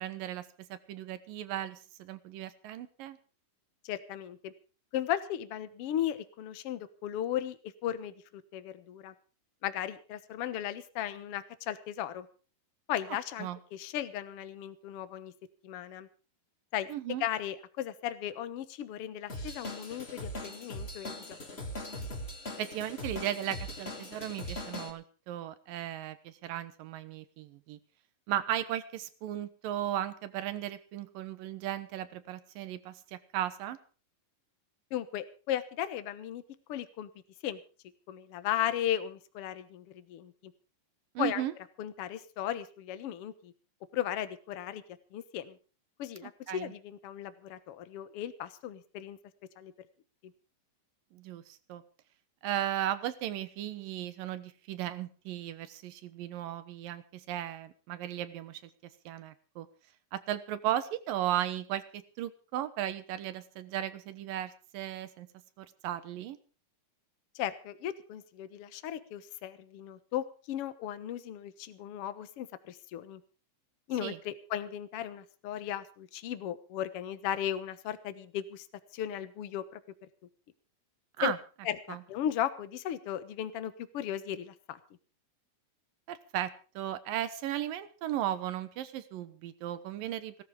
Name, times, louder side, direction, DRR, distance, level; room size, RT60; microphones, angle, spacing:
voice 1, 0.0-3.2 13.4-13.6 16.9-17.2 22.6-27.8 28.3-33.8 41.1-41.5 46.2-46.7 51.1-51.8 52.4-58.6 59.1-59.7 60.1-65.3 65.6-66.4 74.0-74.2 81.2-81.4 81.9-82.0 86.1-90.4, right 12 dB, 85° right, 13 dB, 2.9 m, -36 dB
voice 2, 3.8-4.5 4.9-9.1 9.6-12.3 12.9-15.3 15.6-16.1 16.7-16.9 17.2-21.4 34.9-36.4 36.7-37.1 37.4-37.6 38.1-40.5 41.2-41.4 41.8-43.5 43.9-44.8 45.1-45.6 46.0-49.2 49.6-49.7 67.3-73.2 73.9-78.7 78.9-79.8 81.2-81.3 81.6-84.8, left 11 dB, 60° left, 13 dB, 1.6 m, -36 dB
Drum kit / Drum, 19.3-24.9, left 1 dB, 20° left, 2.5 m, -40 dB
17.5 x 13.5 x 5.1 m, 0.37 s
omnidirectional pair, 4.0 m